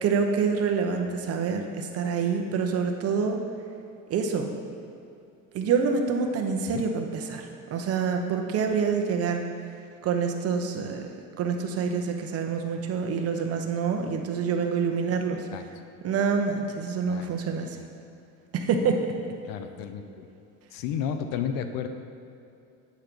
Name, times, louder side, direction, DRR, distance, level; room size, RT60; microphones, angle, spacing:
voice 1, 0.0-3.4 4.1-4.5 5.5-9.4 10.0-11.1 11.4-15.5 16.0-17.8 18.5-19.1, right 5 dB, 40° right, 4 dB, 0.9 m, -26 dB
voice 2, 19.4-20.3 20.7-21.9, left 8 dB, 75° left, 8 dB, 0.7 m, -32 dB
8.2 x 6.1 x 5.2 m, 2.6 s
cardioid pair, 140°, 35 cm